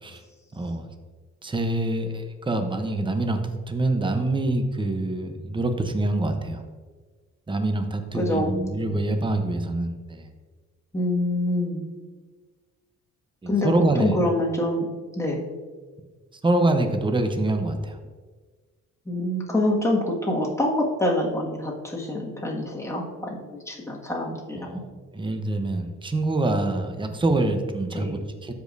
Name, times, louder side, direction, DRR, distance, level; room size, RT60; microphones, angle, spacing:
voice 1, 0.5-0.9 1.4-6.6 7.5-10.2 13.4-14.2 16.4-18.0 24.5-28.5, right 2 dB, 15° right, 6 dB, 0.8 m, -25 dB
voice 2, 8.1-9.0 10.9-11.8 13.5-13.7 14.0-15.5 19.1-24.8 27.9-28.2, left 1 dB, 10° left, -3 dB, 1.9 m, -26 dB
13.0 x 5.2 x 2.7 m, 1.4 s
cardioid pair, 90°, 30 cm